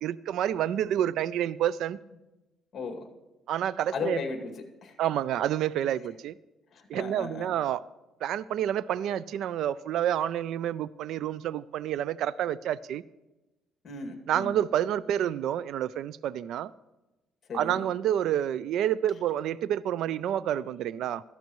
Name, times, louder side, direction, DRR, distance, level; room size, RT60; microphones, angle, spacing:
voice 1, 0.0-2.0 3.5-4.2 5.0-6.3 6.9-7.8 8.2-13.0 14.3-16.7 17.5-21.2, right 11 dB, 70° right, 19 dB, 0.3 m, -29 dB
voice 2, 2.7-3.1 3.9-5.0 6.7-7.5 13.8-14.5 17.5-17.9, left 4 dB, 40° left, 4 dB, 2.2 m, -36 dB
17.0 x 13.5 x 3.1 m, 1.0 s
cardioid pair, 145°, 0 cm